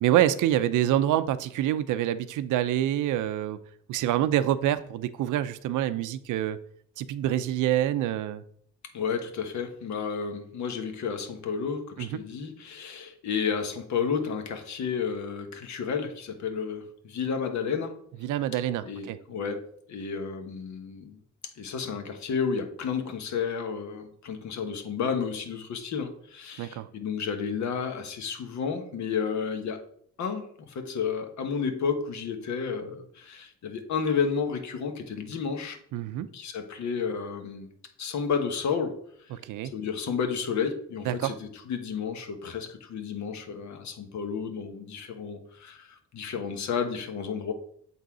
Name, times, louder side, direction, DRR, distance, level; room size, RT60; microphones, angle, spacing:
voice 1, 0.0-3.6 3.9-6.6 7.0-8.4 12.0-12.1 18.2-19.2 26.6-26.9 35.9-36.3 39.3-39.7 41.0-41.3, right 12 dB, 80° right, 13 dB, 0.6 m, -26 dB
voice 2, 8.9-18.0 18.8-21.2 21.6-29.8 30.2-35.8 36.3-37.7 38.0-39.0 39.7-47.5, left 6 dB, 65° left, 7 dB, 1.2 m, -31 dB
7.3 x 4.0 x 4.8 m, 0.65 s
cardioid pair, 90°, 30 cm